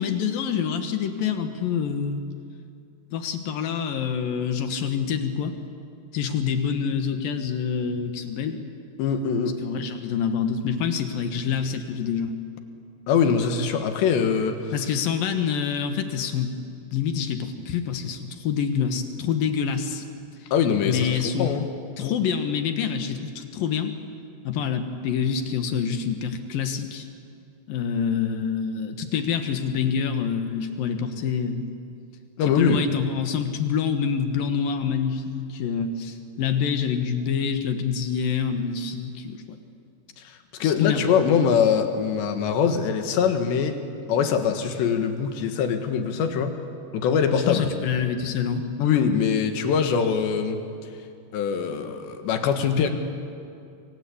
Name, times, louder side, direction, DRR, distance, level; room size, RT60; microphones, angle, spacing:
voice 1, 0.0-2.2 3.1-5.5 6.1-8.6 9.6-12.3 14.7-16.6 16.9-20.1 20.4-20.5 20.8-21.5 22.0-23.9 24.4-27.1 27.7-31.7 32.5-39.6 40.6-41.0 47.5-48.7, left 7 dB, 65° left, 7 dB, 2.9 m, -26 dB
voice 2, 9.0-9.6 13.1-14.7 20.5-21.7 32.4-32.8 40.2-43.8 44.1-46.6 46.9-47.7 48.8-50.6 51.3-52.9, left 7 dB, 80° left, 6 dB, 4.0 m, -23 dB
28.5 x 23.0 x 8.6 m, 2.5 s
omnidirectional pair, 4.9 m